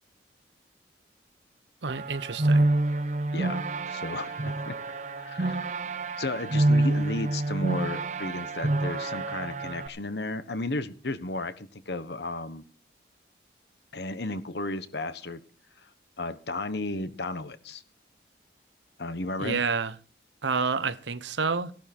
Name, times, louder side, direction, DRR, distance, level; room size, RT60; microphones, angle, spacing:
voice 1, 1.8-2.7 19.4-19.9 20.4-21.7, right 5 dB, 85° right, 0.9 m, -29 dB
sound 1, 1.9-9.9, right 2 dB, 40° right, 0.7 m, -27 dB
voice 2, 3.3-3.6 3.9-4.8 5.2-5.7 6.2-12.6 13.9-15.4 15.8-15.9 16.2-17.8 19.0-19.6, left 2 dB, 70° left, 1.2 m, -34 dB
15.5 x 12.0 x 4.4 m
head